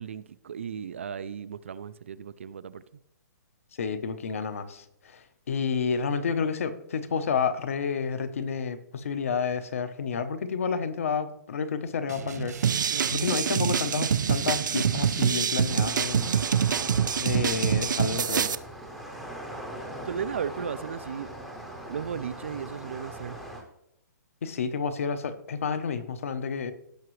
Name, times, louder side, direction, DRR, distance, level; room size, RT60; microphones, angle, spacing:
voice 1, 0.0-2.8 12.9-13.3 20.0-21.3 21.9-23.4, right 7 dB, 40° right, 0.4 m, -35 dB
voice 2, 3.8-16.3 17.2-18.5 24.4-26.7, left 6 dB, 45° left, 0.8 m, -30 dB
sound 1, 12.1-15.3, right 7 dB, 60° right, 1.3 m, -37 dB
sound 2, 12.6-18.5, right 7 dB, 85° right, 0.6 m, -25 dB
sound 3, 15.7-23.6, right 1 dB, ahead, 0.7 m, -40 dB
17.0 x 5.9 x 3.2 m
hypercardioid pair, 180°, 10 cm